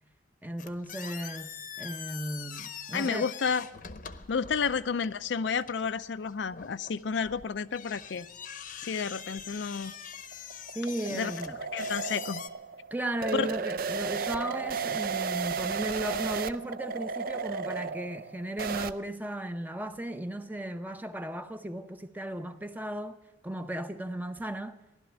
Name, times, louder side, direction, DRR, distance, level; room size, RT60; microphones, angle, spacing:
voice 1, 0.4-3.3 10.7-11.6 12.9-23.2 23.4-24.8, right 1 dB, 10° right, 0.6 m, -35 dB
sound 1, 0.6-12.5, left 8 dB, 45° left, 0.8 m, -44 dB
voice 2, 2.9-3.6 4.3-8.3 8.8-9.9 11.1-11.3 11.7-12.4 13.3-13.5, left 6 dB, 70° left, 0.5 m, -31 dB
sound 2, 9.9-18.9, right 5 dB, 50° right, 0.4 m, -34 dB
15.5 x 12.0 x 7.1 m
head